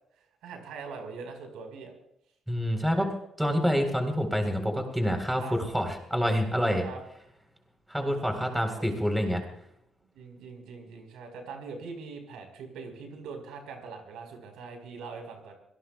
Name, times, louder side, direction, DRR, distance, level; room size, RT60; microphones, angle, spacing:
voice 1, 0.4-1.9 5.4-5.6 6.8-7.0 8.0-8.9 10.1-15.6, right 5 dB, 90° right, 4 dB, 4.4 m, -42 dB
voice 2, 2.5-3.1 3.4-6.9 7.9-9.4, equal, 5° right, 4 dB, 4.0 m, -27 dB
25.0 x 18.0 x 2.4 m, 0.75 s
cardioid pair, 90°, 0 cm